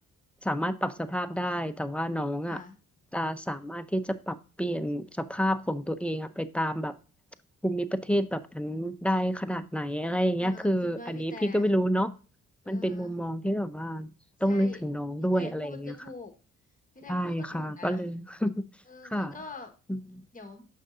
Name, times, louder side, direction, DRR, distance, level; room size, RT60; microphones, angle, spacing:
voice 1, 0.4-2.6 3.1-6.9 7.6-12.1 12.7-14.1 14.4-15.9 17.1-18.7 19.1-19.3 20.1-20.2, equal, 5° left, 0.6 m, -29 dB
voice 2, 2.4-2.8 10.4-11.7 12.6-13.1 14.4-14.8 15.3-16.3 16.9-18.0 18.9-19.7 20.3-20.7, left 3 dB, 25° left, 1.4 m, -45 dB
6.7 x 6.4 x 2.5 m
cardioid pair, 90°, 30 cm